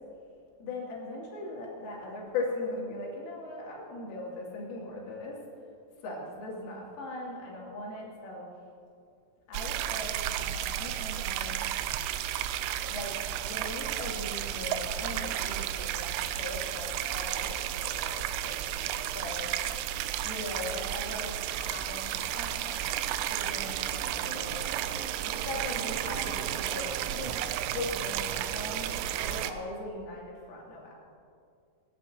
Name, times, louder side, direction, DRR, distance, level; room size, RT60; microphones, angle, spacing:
voice 1, 0.6-5.4 6.0-8.5 9.5-11.6 12.9-19.5 20.2-24.7 25.2-28.9 29.2-30.9, left 2 dB, 80° left, -4 dB, 5.3 m, -39 dB
sound 1, 9.5-29.5, right 11 dB, 85° right, 3.0 m, -33 dB
26.5 x 11.5 x 2.9 m, 2.4 s
omnidirectional pair, 5.7 m